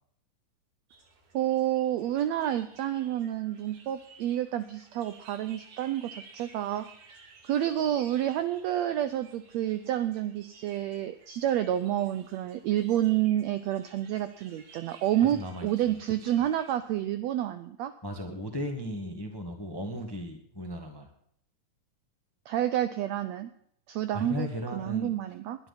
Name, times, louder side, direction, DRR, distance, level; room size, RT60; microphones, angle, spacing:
sound 1, 0.9-17.1, right 4 dB, 70° right, 3.7 m, -56 dB
voice 1, 1.3-6.9 7.2-17.9 22.5-23.5 23.9-25.6, right 12 dB, 90° right, 11 dB, 1.5 m, -29 dB
voice 2, 15.3-15.9 18.0-21.1 24.1-25.1, equal, 15° left, 4 dB, 0.8 m, -36 dB
20.5 x 10.5 x 4.2 m, 0.67 s
omnidirectional pair, 3.8 m